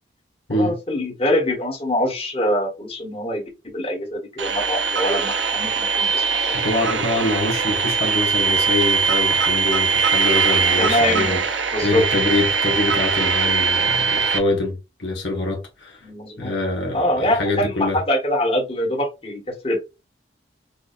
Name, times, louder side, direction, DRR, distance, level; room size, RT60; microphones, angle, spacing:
voice 1, 0.5-6.7 10.7-11.4 11.7-12.0 16.0-16.5 16.9-19.8, left 1 dB, 30° left, 1.4 m, -24 dB
sound 1, 4.4-14.4, right 5 dB, 85° right, 0.7 m, -21 dB
voice 2, 6.5-16.1 16.4-18.0, left 2 dB, 80° left, 1.3 m, -25 dB
6.2 x 2.3 x 2.5 m
head